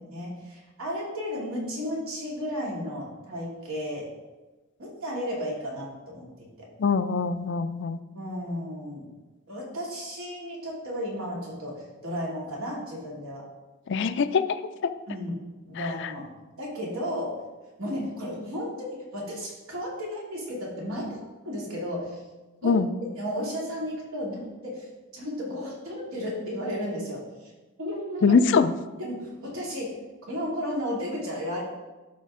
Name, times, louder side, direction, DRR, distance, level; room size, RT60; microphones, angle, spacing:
voice 1, 0.0-4.1 4.8-6.3 8.1-9.0 9.5-13.4 15.1-15.3 15.7-16.3 16.6-17.4 17.8-18.7 19.1-21.1 21.4-22.2 22.6-22.7 23.2-24.9 25.1-27.2 27.8-28.4 29.0-29.9 30.3-31.6, equal, 70° right, -4 dB, 2.6 m, -33 dB
voice 2, 6.8-8.0 13.9-14.9 15.8-16.1 22.6-22.9 28.2-28.7, left 5 dB, 55° left, 12 dB, 0.4 m, -23 dB
12.5 x 4.3 x 3.7 m, 1.2 s
head